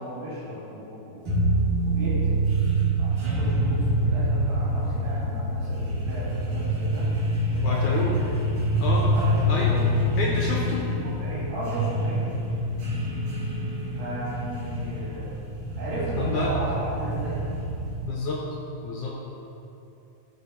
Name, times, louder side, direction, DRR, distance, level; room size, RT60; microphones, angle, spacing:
voice 1, 0.0-1.5 1.8-2.4 3.0-7.1 7.5-8.3 9.1-10.1 10.7-12.3 13.9-15.3 15.8-17.4, right 1 dB, 85° right, -11 dB, 4.0 m, -35 dB
sound 1, 1.3-18.0, right 1 dB, 60° right, 3.3 m, -26 dB
voice 2, 7.6-8.2 8.8-9.1 9.5-9.7 10.2-10.9 16.2-16.6 18.0-18.4 18.8-19.2, left 3 dB, 75° left, -2 dB, 2.0 m, -28 dB
13.5 x 5.1 x 4.3 m, 2.9 s
omnidirectional pair, 4.0 m